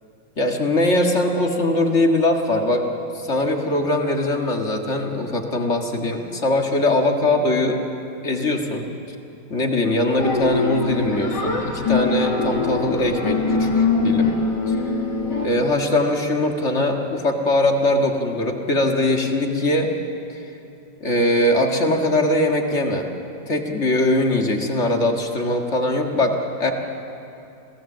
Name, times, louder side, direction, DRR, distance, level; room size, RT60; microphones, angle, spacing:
voice 1, 0.4-2.9 3.1-7.8 8.2-8.9 9.5-14.3 14.7-14.8 15.4-19.9 21.0-23.1 23.5-26.7, left 1 dB, 35° left, 2 dB, 1.9 m, -21 dB
sound 1, 10.2-15.5, left 3 dB, 60° left, 2.9 m, -22 dB
27.0 x 17.5 x 7.4 m, 2.7 s
omnidirectional pair, 2.1 m